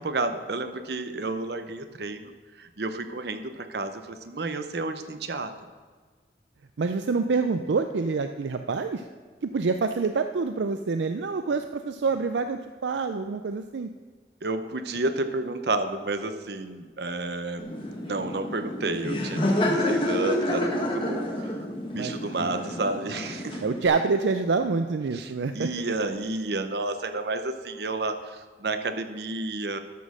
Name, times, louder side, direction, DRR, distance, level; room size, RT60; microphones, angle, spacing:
voice 1, 0.0-2.3 2.6-5.5 14.4-17.7 18.0-21.7 21.9-23.6 25.1-29.8, right 2 dB, 70° right, 9 dB, 0.8 m, -31 dB
voice 2, 6.8-9.1 9.4-13.9 21.9-22.7 23.6-25.7, right 4 dB, 85° right, 8 dB, 0.5 m, -27 dB
Laughter, 17.6-23.9, left 1 dB, 30° left, 1.4 m, -29 dB
12.5 x 6.4 x 6.2 m, 1.5 s
head